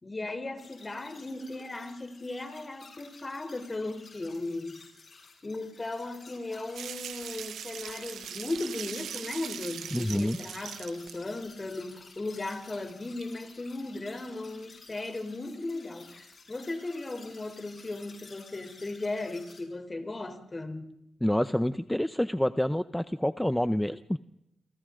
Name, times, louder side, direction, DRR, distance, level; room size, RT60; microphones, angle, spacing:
voice 1, 0.0-4.8 5.4-20.9, left 2 dB, 30° left, 3.6 m, -37 dB
sound 1, 0.6-19.6, left 4 dB, 55° left, 7.9 m, -53 dB
sound 2, 6.7-11.2 11.7-11.8 12.9-13.0 13.2-13.3, right 9 dB, 90° right, 0.7 m, -40 dB
voice 2, 9.9-10.4 21.2-24.2, left 1 dB, 5° left, 0.8 m, -27 dB
29.5 x 23.5 x 3.9 m
cardioid pair, 60°, 0 cm